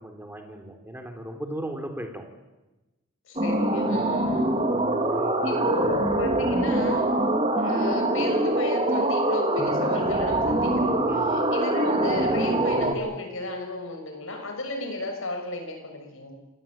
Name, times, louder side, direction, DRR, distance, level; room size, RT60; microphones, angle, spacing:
voice 1, 0.0-2.2 3.8-5.9 11.0-11.4, right 1 dB, 10° right, 5 dB, 3.5 m, -37 dB
voice 2, 3.3-4.5 5.4-7.2 7.6-16.3, left 2 dB, 65° left, 4 dB, 6.6 m, -34 dB
sound 1, 3.4-12.9, right 1 dB, 30° right, 3.0 m, -24 dB
27.0 x 18.5 x 8.9 m, 1.1 s
head